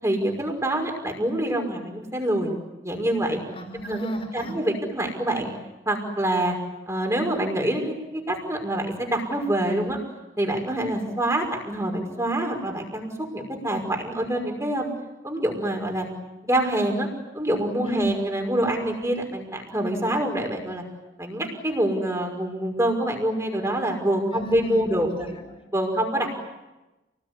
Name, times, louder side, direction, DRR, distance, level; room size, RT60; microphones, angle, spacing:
voice 1, 0.0-2.5 2.8-3.4 3.8-4.0 4.3-5.5 5.9-6.6 6.9-10.0 10.4-14.9 15.2-16.1 16.5-17.1 17.3-20.8 21.2-25.3 25.7-26.3, right 1 dB, 15° right, 2 dB, 5.6 m, -26 dB
voice 2, 3.5-4.5 17.8-18.1 24.3-25.6, equal, 30° left, 5 dB, 5.3 m, -33 dB
30.0 x 20.0 x 9.9 m, 1.0 s
head